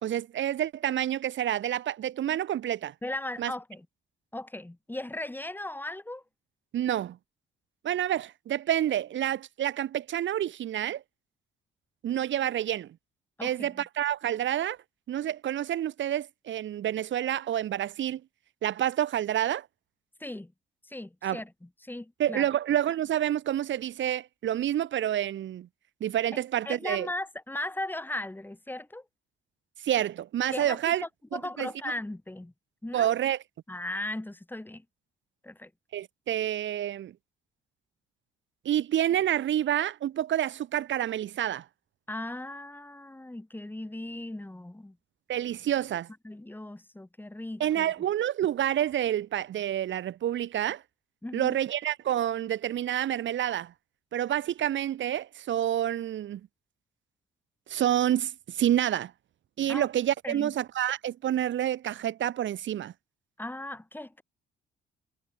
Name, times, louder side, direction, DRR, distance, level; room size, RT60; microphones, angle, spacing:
voice 1, 0.0-2.9 3.4-3.5 6.7-7.2 7.8-11.0 12.0-13.0 13.4-14.8 15.1-18.2 18.6-19.7 21.2-21.4 22.2-25.7 26.0-27.1 29.8-31.0 31.3-31.7 32.9-33.4 35.9-37.1 38.6-41.6 45.3-46.1 47.6-50.8 51.3-53.7 54.1-56.4 57.7-59.1 59.6-62.9, right 11 dB, 70° right, 3.1 m, -28 dB
voice 2, 3.0-3.9 4.3-6.2 13.4-13.7 20.2-20.5 20.9-21.5 21.8-22.5 26.3-29.0 30.5-32.5 32.8-33.1 33.7-34.8 35.4-35.7 42.1-45.0 46.2-47.9 51.2-51.6 59.7-59.9 60.2-60.5 63.4-64.2, left 1 dB, 10° left, 7.1 m, -37 dB
cardioid pair, 90°, 20 cm